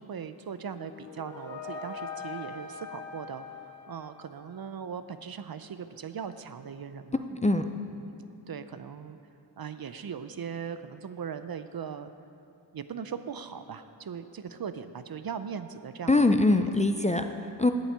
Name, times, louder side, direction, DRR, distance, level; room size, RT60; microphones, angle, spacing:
voice 1, 0.0-7.2 7.6-8.1 8.5-9.2 9.6-12.1 12.7-16.2, right 7 dB, 50° right, 11 dB, 0.6 m, -39 dB
sound 1, 0.6-4.6, left 5 dB, 50° left, 2.8 m, -42 dB
voice 2, 7.3-7.7 16.1-17.7, left 2 dB, 15° left, 7 dB, 0.5 m, -23 dB
8.7 x 7.3 x 8.7 m, 2.6 s
wide cardioid pair, 70°, 47 cm